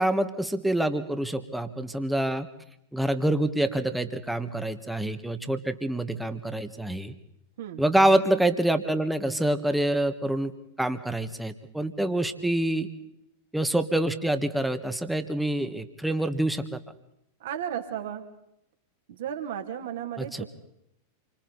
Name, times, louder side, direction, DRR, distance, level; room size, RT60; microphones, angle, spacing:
voice 1, 0.0-2.5 2.9-7.1 7.8-10.5 10.8-12.9 13.5-16.8 20.2-20.4, right 1 dB, 5° right, 9 dB, 1.5 m, -26 dB
voice 2, 17.4-18.2 19.1-20.5, right 9 dB, 55° right, 5 dB, 2.7 m, -34 dB
28.5 x 25.0 x 4.1 m, 0.77 s
figure-of-eight pair, 90°, 0 cm